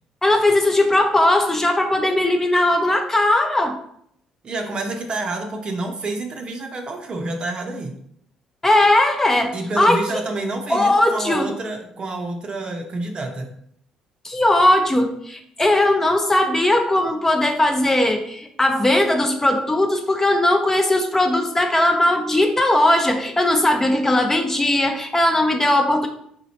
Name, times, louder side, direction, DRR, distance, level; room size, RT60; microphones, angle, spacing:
voice 1, 0.2-3.8 8.6-10.2 10.7-11.5 14.2-26.1, left 1 dB, 15° left, 4 dB, 0.6 m, -18 dB
voice 2, 4.4-7.9 9.5-13.5, right 2 dB, 40° right, 4 dB, 0.6 m, -28 dB
3.9 x 3.0 x 2.8 m, 0.69 s
hypercardioid pair, 50°, 2 cm